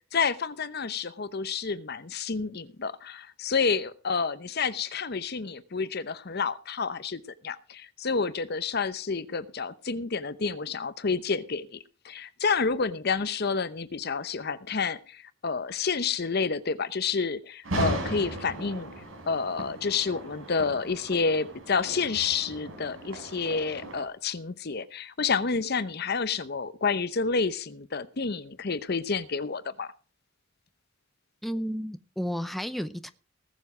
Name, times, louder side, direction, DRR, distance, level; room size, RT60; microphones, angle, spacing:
voice 1, 0.1-11.8 12.0-18.9 19.3-29.9, left 5 dB, 50° left, 0.8 m, -29 dB
sound 1, 17.6-24.0, right 1 dB, 85° right, 4.3 m, -37 dB
voice 2, 31.4-33.1, equal, ahead, 0.6 m, -32 dB
19.0 x 7.2 x 4.9 m
head